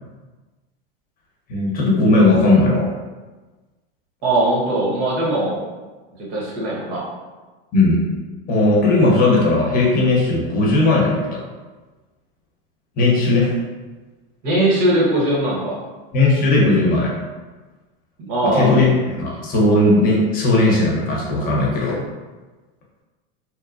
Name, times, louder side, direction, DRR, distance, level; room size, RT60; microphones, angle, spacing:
voice 1, 1.5-2.9 7.7-8.0 8.5-11.4 13.0-13.5 16.1-17.1 18.4-22.0, left 2 dB, 30° left, -3 dB, 0.7 m, -17 dB
voice 2, 4.2-5.6 6.3-7.0 14.4-15.8 18.2-18.8, right 1 dB, 60° right, -5 dB, 1.1 m, -20 dB
2.9 x 2.1 x 2.4 m, 1.3 s
supercardioid pair, 130°, 29 cm